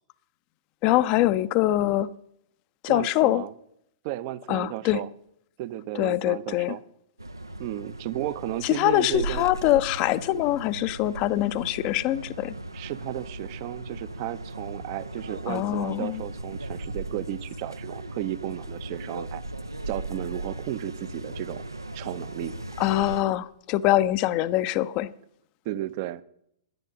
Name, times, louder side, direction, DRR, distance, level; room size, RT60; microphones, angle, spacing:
voice 1, 0.8-2.1 2.8-3.4 4.5-5.0 5.9-6.8 8.6-12.5 15.5-16.2 22.8-25.1, left 15 dB, 35° left, 0.5 m, -24 dB
voice 2, 2.9-3.5 4.0-5.1 5.6-6.8 7.6-9.5 12.7-19.4 19.9-21.7 21.9-22.5 25.6-26.2, right 14 dB, 40° right, 0.6 m, -34 dB
sound 1, 7.2-23.2, right 2 dB, 85° right, 0.5 m, -37 dB
10.5 x 9.9 x 5.2 m
figure-of-eight pair, 105°, 2 cm